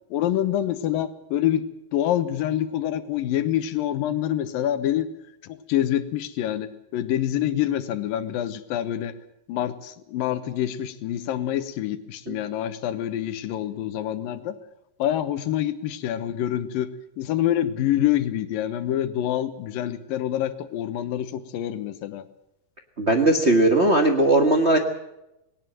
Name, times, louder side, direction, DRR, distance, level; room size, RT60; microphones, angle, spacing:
voice 1, 0.1-1.7 1.9-5.1 5.4-9.2 9.5-14.6 15.0-22.2, left 11 dB, 85° left, 11 dB, 2.9 m, -26 dB
voice 2, 23.0-24.8, right 2 dB, 55° right, 3 dB, 0.7 m, -18 dB
20.0 x 18.5 x 7.7 m, 0.88 s
omnidirectional pair, 4.0 m